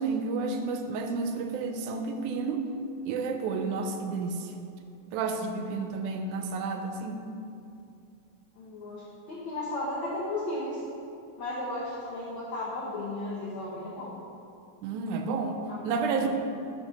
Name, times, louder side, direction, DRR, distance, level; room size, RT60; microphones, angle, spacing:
voice 1, 0.0-2.7 3.0-4.5 5.1-7.3 14.8-16.3, right 4 dB, 85° right, 6 dB, 2.0 m, -31 dB
voice 2, 8.5-10.8 11.4-14.2 15.7-15.8 16.2-16.3, left 2 dB, 90° left, -6 dB, 1.0 m, -35 dB
5.8 x 4.7 x 5.6 m, 2.6 s
omnidirectional pair, 3.5 m